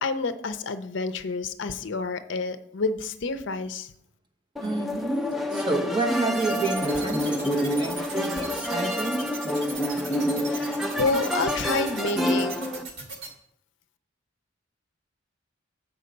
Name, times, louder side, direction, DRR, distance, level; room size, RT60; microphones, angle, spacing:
voice 1, 0.0-3.9 10.5-12.5, left 3 dB, 65° left, 10 dB, 0.5 m, -29 dB
sound 1, 4.6-12.8, equal, ahead, 0.5 m, -28 dB
voice 2, 4.6-7.5 7.8-9.3, right 2 dB, 25° right, 1 dB, 1.1 m, -29 dB
sound 2, 6.4-13.3, right 4 dB, 80° right, 1.7 m, -37 dB
7.3 x 5.5 x 5.2 m, 0.72 s
head